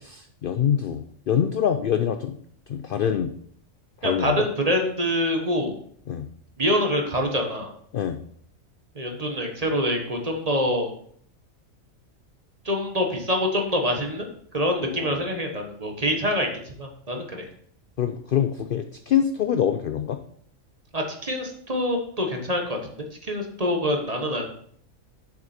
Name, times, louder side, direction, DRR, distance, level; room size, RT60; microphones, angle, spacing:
voice 1, 0.0-2.4 2.7-3.3 4.0-4.5 6.1-6.3 7.9-8.2 14.8-15.2 18.0-20.2, left 9 dB, 70° left, 8 dB, 0.5 m, -25 dB
voice 2, 4.0-5.7 6.6-7.7 8.9-10.9 12.6-14.3 14.5-16.5 16.8-17.4 20.9-24.5, equal, 30° right, 3 dB, 1.2 m, -25 dB
6.9 x 6.8 x 4.3 m, 0.62 s
omnidirectional pair, 1.5 m